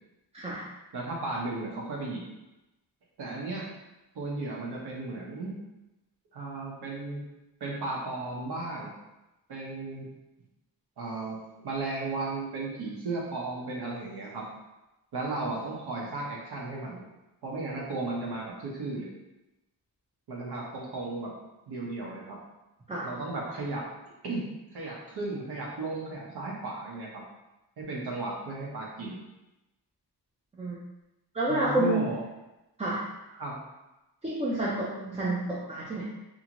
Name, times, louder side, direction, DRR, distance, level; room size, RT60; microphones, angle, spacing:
voice 1, 0.9-2.2 3.2-3.7 4.1-5.5 6.3-7.2 7.6-8.9 9.5-10.1 11.0-11.4 11.6-14.5 15.1-17.0 17.4-19.1 20.3-21.3 21.7-22.4 23.0-23.9 24.2-24.4 24.7-27.2 27.8-29.2 31.5-32.2 33.3-33.6, right 3 dB, 65° right, -3 dB, 0.9 m, -35 dB
voice 2, 31.3-32.1 32.8-33.0 34.2-36.0, right 2 dB, 15° right, -6 dB, 0.4 m, -29 dB
2.7 x 2.6 x 2.9 m, 0.98 s
wide cardioid pair, 125°, 42 cm